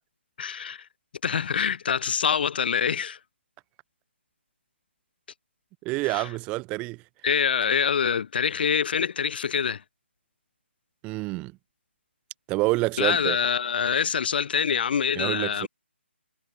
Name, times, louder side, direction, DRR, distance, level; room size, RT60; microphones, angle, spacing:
voice 1, 0.4-0.8 1.2-3.2 6.1-6.2 7.2-9.8 13.0-15.7, left 7 dB, 50° left, 2.2 m, -25 dB
voice 2, 5.8-7.0 11.0-11.5 12.5-13.4 15.2-15.7, right 22 dB, 15° right, 0.6 m, -27 dB
figure-of-eight pair, 150°, 6 cm